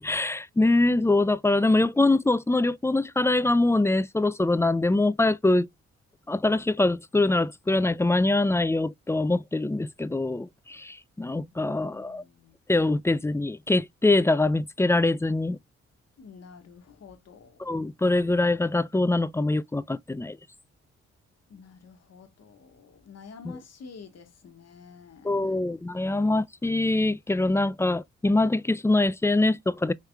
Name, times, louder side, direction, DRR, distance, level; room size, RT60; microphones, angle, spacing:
voice 1, 0.0-5.7 6.3-12.2 12.7-15.6 17.6-20.4 25.2-29.9, left 2 dB, 10° left, 0.4 m, -24 dB
voice 2, 11.2-12.6 16.2-17.6 21.5-25.8, left 5 dB, 60° left, 1.4 m, -49 dB
5.4 x 3.2 x 2.3 m
supercardioid pair, 45°, 29 cm